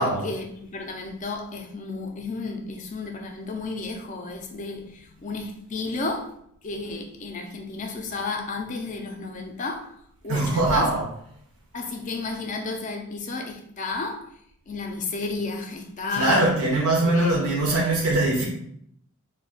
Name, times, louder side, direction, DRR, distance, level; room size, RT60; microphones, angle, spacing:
voice 1, 0.0-6.4 6.6-10.0 10.2-10.9 11.7-14.3 14.7-16.5 17.0-17.5, left 3 dB, 35° left, 0.3 m, -32 dB
voice 2, 10.3-11.0 16.1-18.4, right 2 dB, 90° right, 0.6 m, -22 dB
2.4 x 2.1 x 3.7 m
head